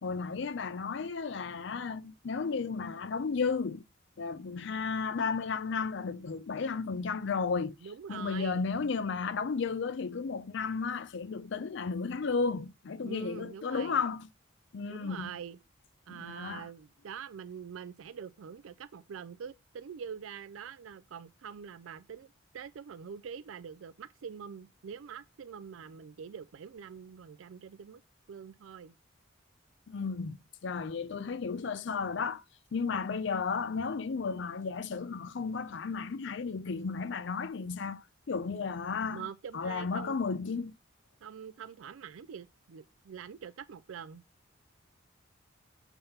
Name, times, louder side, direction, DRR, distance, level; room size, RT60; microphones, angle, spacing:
voice 1, 0.0-3.8 4.2-7.7 8.1-14.3 14.7-15.3 16.1-16.7 29.9-32.4 32.7-39.3 39.5-40.7, left 5 dB, 65° left, 0.5 m, -33 dB
voice 2, 7.8-8.6 13.0-14.0 14.9-15.6 16.1-28.0 28.3-28.9 39.1-40.2 41.2-44.2, right 7 dB, 90° right, 0.4 m, -45 dB
7.1 x 3.4 x 5.6 m
head